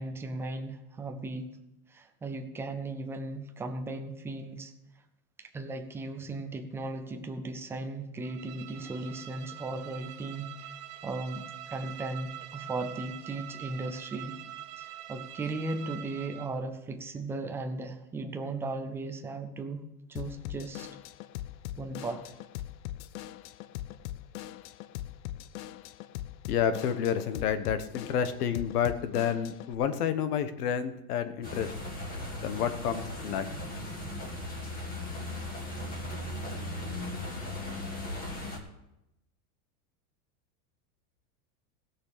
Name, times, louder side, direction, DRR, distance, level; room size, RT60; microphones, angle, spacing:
voice 1, 0.0-1.5 1.9-4.7 5.4-10.7 11.0-14.4 14.8-19.8 20.1-20.9 21.8-22.3, right 2 dB, 5° right, 6 dB, 0.3 m, -37 dB
Bowed string instrument, 8.2-16.6, right 12 dB, 75° right, 1.7 m, -45 dB
Drum kit / Drum, 20.2-29.8, left 13 dB, 65° left, 0.7 m, -41 dB
voice 2, 26.5-31.7 32.4-33.5, left 8 dB, 85° left, 11 dB, 1.3 m, -29 dB
sound 1, 31.4-38.6, left 1 dB, 20° left, 2.2 m, -37 dB
16.0 x 6.5 x 6.7 m, 0.90 s
supercardioid pair, 150°, 45 cm